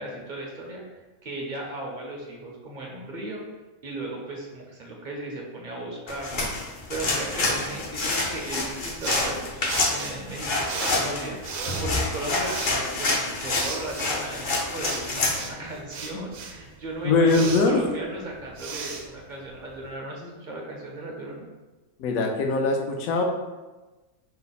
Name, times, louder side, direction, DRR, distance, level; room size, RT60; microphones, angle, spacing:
voice 1, 0.0-3.4 3.8-21.5, right 2 dB, 45° right, -1 dB, 0.6 m, -36 dB
sound 1, 6.1-15.4, left 2 dB, 50° left, 0.6 m, -27 dB
sound 2, 9.0-19.9, right 5 dB, 85° right, 1.1 m, -37 dB
voice 2, 17.0-17.8 22.0-23.2, left 3 dB, 75° left, 1 dB, 1.1 m, -21 dB
5.6 x 2.0 x 4.0 m, 1.2 s
omnidirectional pair, 1.5 m